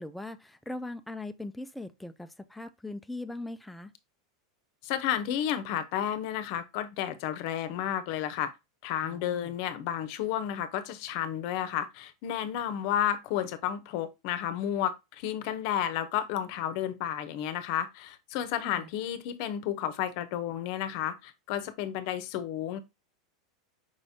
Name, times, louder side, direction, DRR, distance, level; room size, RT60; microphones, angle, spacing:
voice 1, 0.0-3.9 9.0-9.5 18.7-18.9, left 2 dB, ahead, 0.4 m, -40 dB
voice 2, 4.8-8.5 8.8-22.8, left 10 dB, 60° left, 0.7 m, -32 dB
5.2 x 3.4 x 2.7 m
hypercardioid pair, 120°, 3 cm